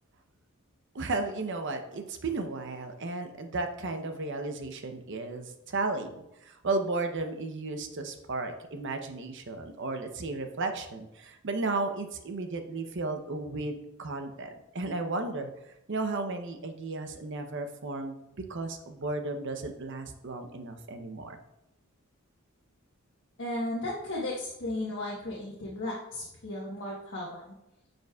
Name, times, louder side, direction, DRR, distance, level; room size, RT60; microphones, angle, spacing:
voice 1, 0.9-18.2 18.5-21.4, right 3 dB, 60° right, 6 dB, 0.7 m, -34 dB
voice 2, 23.4-27.5, left 1 dB, 60° left, -5 dB, 1.2 m, -35 dB
9.1 x 5.2 x 2.3 m, 0.88 s
head